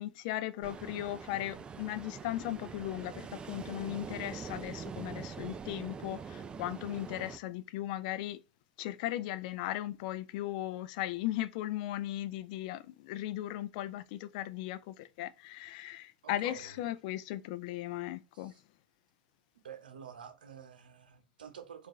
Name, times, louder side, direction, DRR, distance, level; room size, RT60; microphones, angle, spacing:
voice 1, 0.0-8.4 8.8-18.5, left 14 dB, 55° left, 0.4 m, -37 dB
Ocean, 0.6-7.4, right 6 dB, 20° right, 0.4 m, -44 dB
voice 2, 16.2-16.7 18.3-18.6 19.6-21.9, right 8 dB, 80° right, 0.7 m, -49 dB
4.3 x 2.5 x 3.0 m
hypercardioid pair, 100°, 5 cm